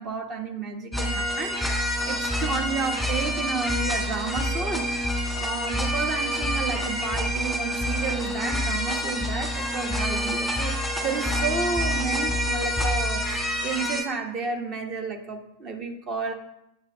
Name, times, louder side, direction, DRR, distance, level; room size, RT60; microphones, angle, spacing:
voice 1, 0.0-1.6 2.1-5.1 5.4-16.3, right 4 dB, 30° right, 5 dB, 1.2 m, -31 dB
sound 1, 0.9-14.0, equal, 5° right, 2.1 m, -27 dB
8.9 x 7.3 x 3.5 m, 0.81 s
figure-of-eight pair, 90°, 0 cm